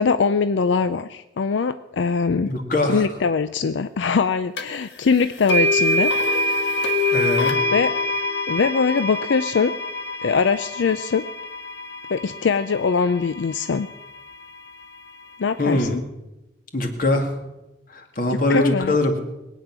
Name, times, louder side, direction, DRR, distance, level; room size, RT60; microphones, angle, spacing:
voice 1, 0.0-2.5 2.9-6.1 7.7-7.9 8.5-9.7 10.2-11.2 12.1-13.9 15.4-16.0 18.5-19.0, left 5 dB, 85° left, 11 dB, 0.5 m, -22 dB
voice 2, 2.5-3.1 7.1-7.6 15.6-16.0 16.7-17.3 17.9-19.1, left 2 dB, 50° left, 4 dB, 2.2 m, -22 dB
sound 1, 4.6-4.7 5.5-13.5, left 1 dB, 70° left, 1.5 m, -24 dB
21.5 x 9.2 x 6.1 m, 0.99 s
head